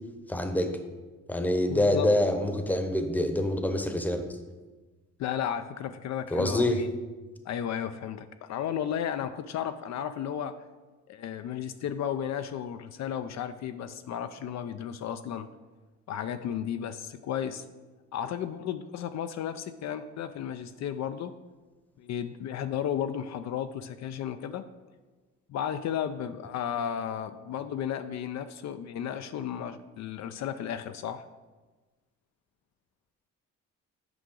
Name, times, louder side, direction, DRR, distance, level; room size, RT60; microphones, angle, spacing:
voice 1, 0.3-0.8 1.3-4.2 6.3-6.9, left 1 dB, 5° left, 6 dB, 0.8 m, -26 dB
voice 2, 1.7-2.1 5.2-6.9 7.5-10.5 11.1-15.5 16.1-17.6 18.1-21.3 22.0-24.6 25.5-31.2, left 9 dB, 65° left, 10 dB, 0.4 m, -34 dB
9.0 x 4.9 x 3.8 m, 1.3 s
cardioid pair, 90°, 30 cm